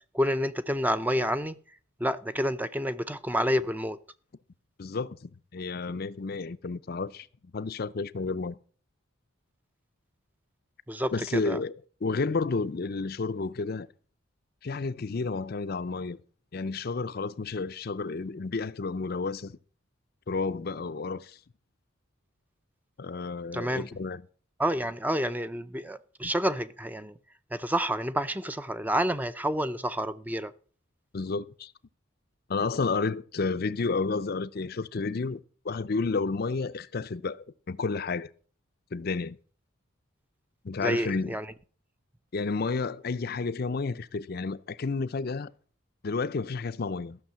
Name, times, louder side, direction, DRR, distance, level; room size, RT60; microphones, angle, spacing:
voice 1, 0.1-1.6 2.0-4.0 10.9-11.6 23.5-23.9 24.6-27.1 27.5-30.5 40.8-41.5, equal, 10° right, 0.5 m, -29 dB
voice 2, 4.8-7.3 7.5-8.6 11.1-11.7 12.0-13.9 14.6-16.2 16.5-19.6 20.3-21.4 23.0-24.2 31.1-31.7 32.5-35.4 35.6-38.3 38.9-39.4 40.6-41.4 42.3-45.5 46.0-47.2, left 4 dB, 45° left, 0.5 m, -31 dB
14.5 x 6.4 x 7.5 m
head